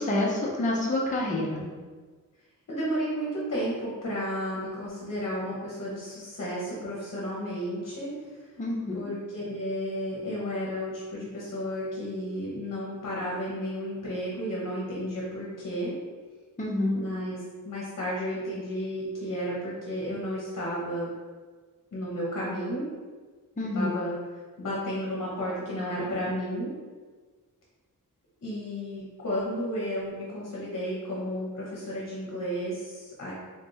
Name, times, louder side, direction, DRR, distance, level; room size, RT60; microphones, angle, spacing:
voice 1, 0.0-1.6 8.6-8.9 16.6-17.0 23.6-23.9, left 1 dB, 25° left, -4 dB, 0.6 m, -27 dB
voice 2, 2.7-8.5 8.9-15.9 16.9-21.1 21.9-22.9 23.7-24.1 24.6-26.7 28.4-33.3, equal, 50° left, -5 dB, 0.9 m, -32 dB
3.6 x 3.4 x 2.7 m, 1.4 s
wide cardioid pair, 145°, 33 cm